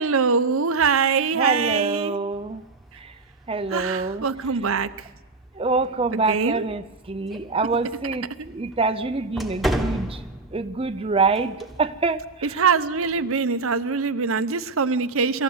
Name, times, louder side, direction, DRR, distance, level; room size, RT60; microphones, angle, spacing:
voice 1, 0.0-2.1 3.7-4.9 6.1-6.6 12.6-15.4, right 5 dB, 70° right, 11 dB, 0.8 m, -23 dB
voice 2, 1.4-2.6 3.5-4.2 5.6-6.8 7.1-8.2 8.5-10.1 10.5-11.5 11.8-12.2, right 4 dB, 25° right, 8 dB, 0.6 m, -24 dB
sound 1, 2.3-13.2, equal, ahead, 1.3 m, -36 dB
24.5 x 14.0 x 8.0 m, 1.1 s
head